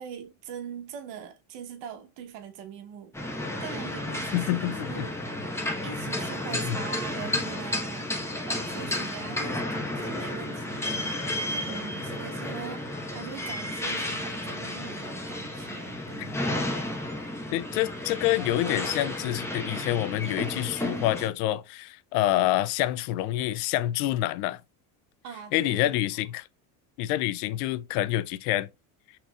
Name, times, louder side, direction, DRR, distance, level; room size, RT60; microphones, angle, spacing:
voice 1, 0.0-3.2 3.6-5.2 5.8-8.1 8.4-16.4 25.2-26.0, right 8 dB, 70° right, 1.0 m, -42 dB
sound 1, 3.1-21.3, left 1 dB, 5° left, 1.0 m, -32 dB
voice 2, 4.3-5.1 6.6-6.8 16.2-16.3 17.5-24.6 25.5-26.5 27.0-28.7, left 14 dB, 80° left, 0.5 m, -27 dB
5.6 x 3.1 x 2.3 m
supercardioid pair, 95°, 45 cm